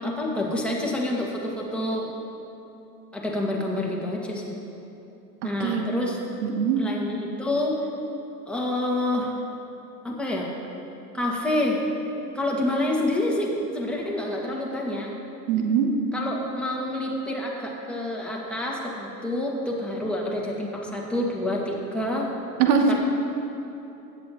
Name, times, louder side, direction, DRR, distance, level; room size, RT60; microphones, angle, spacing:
voice 1, 0.0-2.1 3.1-4.6 5.4-6.2 6.8-7.8 8.5-9.3 10.0-10.5 11.1-11.8 12.3-15.1 16.1-22.3 22.9-23.0, left 1 dB, ahead, -3 dB, 1.9 m, -28 dB
voice 2, 6.4-6.8 15.5-15.9 22.6-23.0, right 6 dB, 65° right, 4 dB, 1.1 m, -21 dB
15.0 x 9.0 x 3.0 m, 2.9 s
hypercardioid pair, 85°, 49 cm